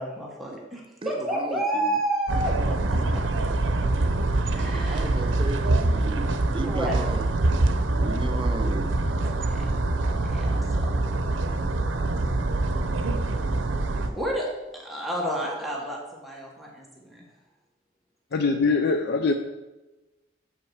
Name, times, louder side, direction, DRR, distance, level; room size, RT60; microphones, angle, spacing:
voice 1, 0.0-2.5 2.9-3.0 4.5-5.3 6.6-6.9 9.2-9.6 10.0-11.3 14.1-17.2, right 1 dB, ahead, -4 dB, 1.4 m, -31 dB
voice 2, 1.0-2.0 4.9-7.3 7.9-9.0, right 2 dB, 25° right, 7 dB, 0.5 m, -35 dB
sound 1, 2.3-14.1, right 2 dB, 85° right, 0.7 m, -25 dB
voice 3, 18.3-19.3, left 4 dB, 60° left, 7 dB, 0.4 m, -22 dB
7.4 x 5.8 x 4.8 m, 1.1 s
head